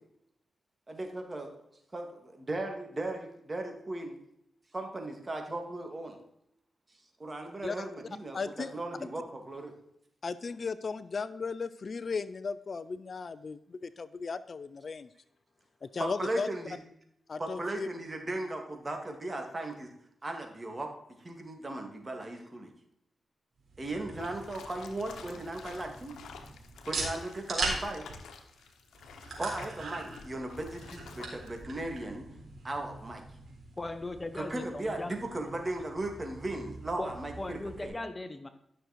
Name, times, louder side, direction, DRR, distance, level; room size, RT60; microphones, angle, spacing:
voice 1, 0.9-1.5 1.9-4.2 4.7-6.2 7.2-9.7 16.0-16.8 17.4-19.9 20.2-20.9 21.2-22.7 23.8-26.1 26.9-28.0 29.4-32.2 32.6-33.2 34.3-37.9, right 2 dB, 35° right, 3 dB, 2.8 m, -37 dB
voice 2, 8.3-8.7 10.2-15.1 15.8-16.5 17.3-17.9, left 4 dB, 55° left, 15 dB, 0.5 m, -36 dB
sound 1, 23.6-37.9, right 3 dB, 65° right, 3.9 m, -42 dB
sound 2, 24.1-31.6, left 6 dB, 85° left, 1.2 m, -50 dB
voice 3, 33.8-35.1 37.0-38.5, left 2 dB, 30° left, 9 dB, 1.2 m, -38 dB
13.0 x 6.5 x 4.6 m, 0.76 s
supercardioid pair, 45°, 0 cm